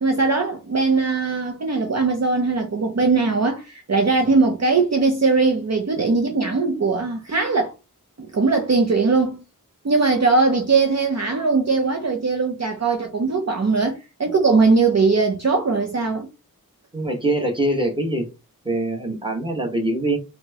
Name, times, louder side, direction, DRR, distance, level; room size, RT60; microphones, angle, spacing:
voice 1, 0.0-7.7 8.2-9.4 9.8-16.3, right 4 dB, 45° right, 0.6 m, -20 dB
voice 2, 16.9-18.3 18.6-20.2, right 1 dB, 15° right, 1.1 m, -23 dB
4.2 x 2.1 x 2.8 m
wide cardioid pair, 50°, 36 cm